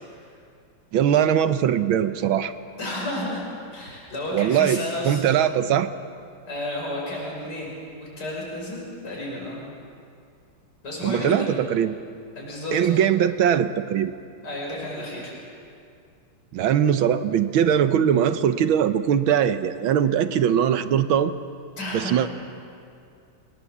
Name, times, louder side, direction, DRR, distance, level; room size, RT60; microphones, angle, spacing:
voice 1, 0.9-2.5 4.3-5.9 11.0-12.0 12.7-14.1 16.5-21.3 21.9-22.3, right 9 dB, 80° right, 11 dB, 1.7 m, -21 dB
voice 2, 2.8-3.4 3.7-5.2 6.5-7.7 8.2-9.6 10.8-11.5 12.4-13.0 14.4-15.3 21.8-22.2, left 1 dB, 50° left, -4 dB, 6.4 m, -31 dB
28.5 x 19.0 x 7.3 m, 2.4 s
omnidirectional pair, 2.2 m